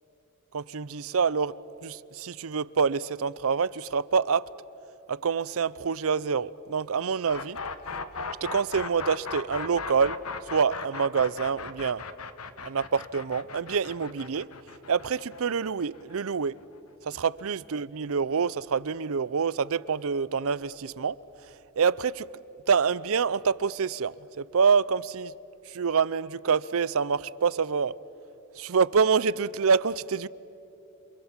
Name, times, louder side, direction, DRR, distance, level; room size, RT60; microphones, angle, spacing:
voice 1, 0.5-4.5 5.1-7.6 8.4-10.2 10.5-12.0 12.6-14.5 14.9-16.6 17.0-21.2 21.4-21.5 21.8-22.3 22.7-25.3 25.7-28.0 28.6-30.3, right 6 dB, 70° right, 0.6 m, -26 dB
sound 1, 7.3-17.1, left 5 dB, 80° left, 1.3 m, -38 dB
28.5 x 27.5 x 7.3 m
head